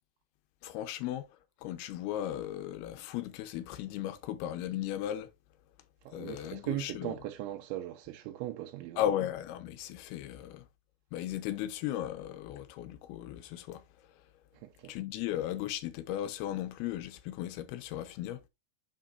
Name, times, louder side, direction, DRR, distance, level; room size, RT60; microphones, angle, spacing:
voice 1, 0.6-1.3 1.6-5.3 6.1-7.1 9.0-10.7 11.1-13.8 14.9-18.4, left 12 dB, 75° left, 2.4 m, -36 dB
voice 2, 6.0-9.0 14.5-14.9, right 14 dB, 85° right, 3.2 m, -39 dB
7.4 x 6.3 x 2.5 m
omnidirectional pair, 5.2 m